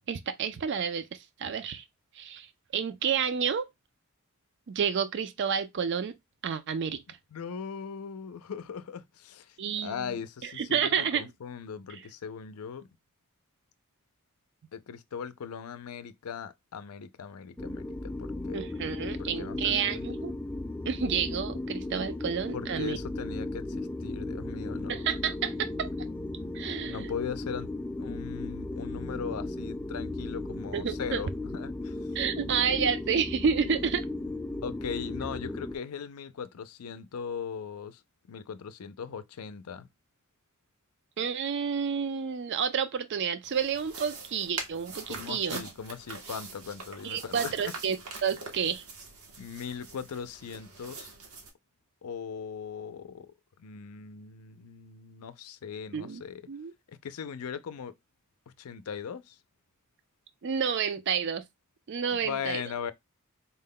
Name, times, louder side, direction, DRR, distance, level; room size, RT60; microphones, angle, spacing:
voice 1, 0.1-1.8 2.2-2.5 2.7-3.6 4.7-6.1 6.4-7.0 9.6-10.1 10.4-11.3 11.9-12.0 18.5-20.3 20.9-23.0 24.9-25.9 26.5-27.1 30.7-31.2 32.2-34.1 41.2-45.6 47.0-48.0 48.2-48.8 55.9-56.2 56.5-56.7 60.4-61.4 61.9-62.6, right 7 dB, 55° right, 0.4 m, -30 dB
voice 2, 7.3-12.9 14.7-18.6 18.9-20.1 22.5-25.2 26.8-27.7 28.0-32.2 34.6-38.0 38.3-39.9 45.1-47.7 49.4-51.1 52.0-53.3 53.6-56.4 56.9-57.9 58.5-59.4 62.1-62.9, left 6 dB, 85° left, 0.5 m, -39 dB
sound 1, 17.6-35.7, left 2 dB, 5° left, 0.4 m, -36 dB
sound 2, 43.4-51.5, right 3 dB, 85° right, 1.1 m, -43 dB
4.3 x 2.2 x 3.6 m
head